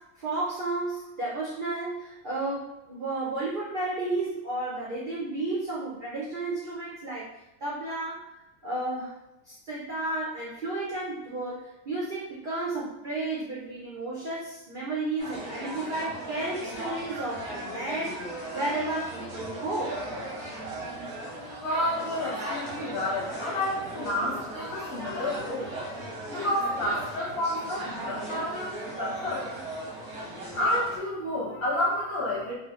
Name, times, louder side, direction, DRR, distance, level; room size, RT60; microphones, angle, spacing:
voice 1, 0.0-7.3 7.6-8.3 8.6-9.2 9.5-18.2 18.5-20.0, right 2 dB, 65° right, -6 dB, 0.5 m, -32 dB
sound 1, 15.2-31.0, right 1 dB, 90° right, 1.4 m, -37 dB
voice 2, 21.6-25.7 26.2-29.4 30.5-32.5, left 1 dB, 50° left, -6 dB, 0.9 m, -30 dB
3.1 x 2.1 x 2.9 m, 0.96 s
omnidirectional pair, 1.6 m